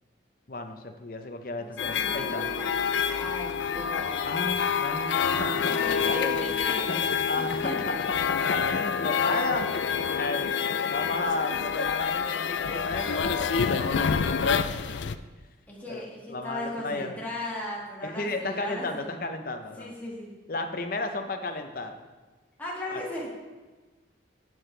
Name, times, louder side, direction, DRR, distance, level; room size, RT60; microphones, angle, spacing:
voice 1, 0.5-2.5 4.3-5.9 6.9-7.0 7.3-7.9 8.3-9.7 10.2-10.5 10.9-15.1 15.9-16.0 16.3-17.1 18.0-19.9 20.5-22.0 22.9-23.0, left 2 dB, 50° left, 5 dB, 0.8 m, -33 dB
voice 2, 1.6-4.3 5.7-7.8 9.8-10.2 15.7-19.1 19.8-20.3 22.6-23.4, left 1 dB, 10° left, -5 dB, 2.0 m, -37 dB
sound 1, 1.8-15.2, left 6 dB, 75° left, 0.4 m, -27 dB
11.5 x 7.8 x 3.3 m, 1.3 s
head